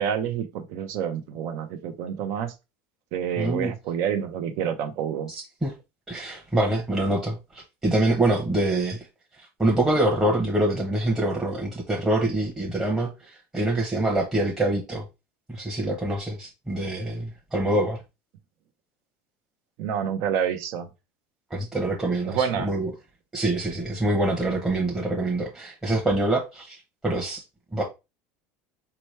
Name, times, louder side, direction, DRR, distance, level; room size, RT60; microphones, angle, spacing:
voice 1, 0.0-2.5 3.1-5.3 19.8-20.9 22.2-22.7, right 8 dB, 60° right, 0.8 m, -28 dB
voice 2, 3.4-3.7 5.3-5.7 6.1-9.1 9.4-15.0 15.5-18.0 21.5-22.9 23.3-27.4 27.7-27.8, right 1 dB, 10° right, 0.9 m, -25 dB
4.4 x 3.0 x 3.2 m
supercardioid pair, 120°, 5 cm